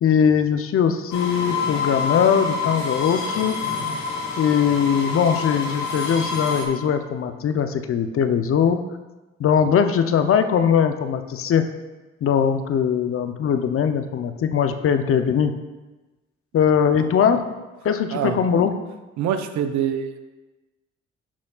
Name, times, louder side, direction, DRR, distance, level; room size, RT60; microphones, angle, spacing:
voice 1, 0.0-3.6 4.4-8.8 9.4-11.7 12.2-15.5 16.5-17.4 17.8-18.7, left 7 dB, 45° left, 8 dB, 0.6 m, -20 dB
sound 1, 1.1-6.6, left 5 dB, 65° left, 1.5 m, -27 dB
voice 2, 19.2-20.2, right 9 dB, 65° right, 9 dB, 0.6 m, -25 dB
11.5 x 4.2 x 2.3 m, 1.2 s
hypercardioid pair, 55°, 30 cm